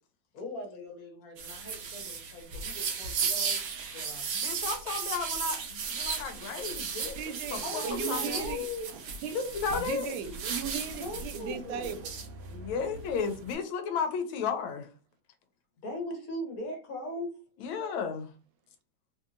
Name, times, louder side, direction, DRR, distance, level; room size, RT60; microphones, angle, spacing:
voice 1, 0.3-3.6 3.9-4.3 7.6-8.9 10.9-12.0 15.8-17.3, left 1 dB, 55° left, 1.2 m, -39 dB
sound 1, 1.4-13.5, right 5 dB, 65° right, 0.9 m, -36 dB
voice 2, 4.4-7.2 7.5-7.6 8.1-8.4 9.3-10.1 12.5-14.9 17.6-18.3, left 5 dB, 85° left, 1.4 m, -33 dB
voice 3, 7.1-8.7 9.2-9.4 9.8-12.0, right 8 dB, 85° right, 1.4 m, -37 dB
3.2 x 2.7 x 2.4 m
omnidirectional pair, 2.1 m